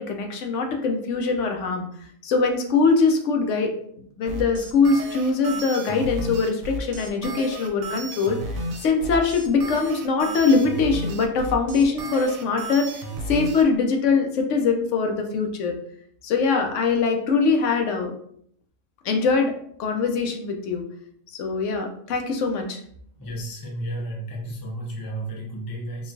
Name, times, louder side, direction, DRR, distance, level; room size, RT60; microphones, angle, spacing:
voice 1, 0.0-1.9 2.2-15.7 16.2-18.1 19.0-19.5 19.8-20.8 21.4-22.8, left 4 dB, 75° left, 4 dB, 0.9 m, -22 dB
sound 1, 4.3-13.6, right 1 dB, 70° right, 0.9 m, -33 dB
voice 2, 23.2-26.1, right 1 dB, 30° left, 0 dB, 0.4 m, -32 dB
3.7 x 2.4 x 2.6 m, 0.65 s
omnidirectional pair, 1.3 m